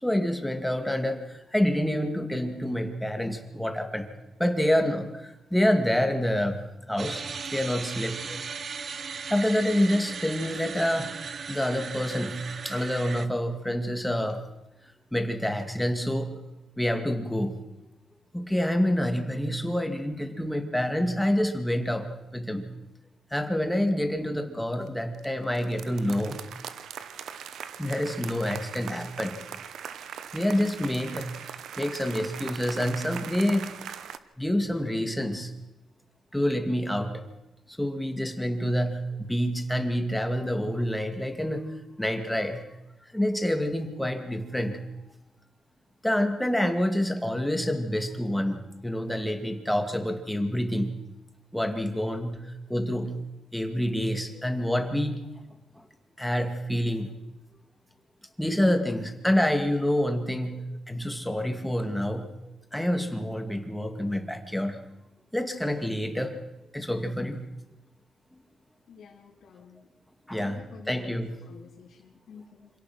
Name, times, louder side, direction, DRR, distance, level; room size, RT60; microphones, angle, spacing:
voice 1, 0.0-4.1 4.4-6.6 6.9-7.2 7.5-8.4 9.3-11.2 11.5-14.4 15.1-16.4 16.8-17.6 18.3-22.7 23.3-26.4 27.8-29.5 30.3-33.7 34.4-35.5 36.3-37.2 37.7-41.7 42.0-42.6 43.1-44.8 46.0-50.9 51.5-53.1 53.5-55.2 55.8-55.9 56.2-57.1 58.4-62.3 62.7-64.8 65.3-66.4 66.7-67.5 70.3-71.6, equal, 5° left, 6 dB, 2.4 m, -27 dB
sound 1, 7.0-13.3, right 6 dB, 45° right, 0.9 m, -37 dB
sound 2, 24.9-25.3 25.5-34.2, right 8 dB, 75° right, 1.1 m, -40 dB
voice 2, 68.9-69.9 70.4-72.7, left 6 dB, 75° left, -3 dB, 3.2 m, -50 dB
26.5 x 17.0 x 6.2 m, 0.99 s
cardioid pair, 110°, 0 cm